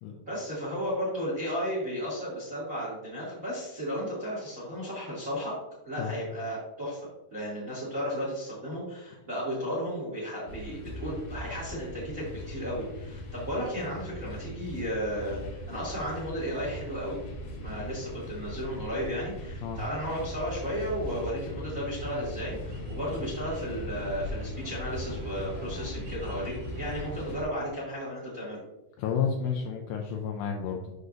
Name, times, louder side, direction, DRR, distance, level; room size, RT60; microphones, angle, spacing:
voice 1, 0.3-5.5 5.8-17.2 17.5-28.6, equal, 25° right, -6 dB, 1.7 m, -34 dB
sound 1, 10.5-27.4, left 1 dB, 65° left, 2.3 m, -39 dB
sound 2, 22.0-27.3, right 1 dB, 75° right, 2.1 m, -45 dB
voice 2, 29.0-30.9, left 6 dB, 90° left, 1 dB, 2.4 m, -31 dB
8.0 x 6.5 x 2.6 m, 0.97 s
omnidirectional pair, 5.7 m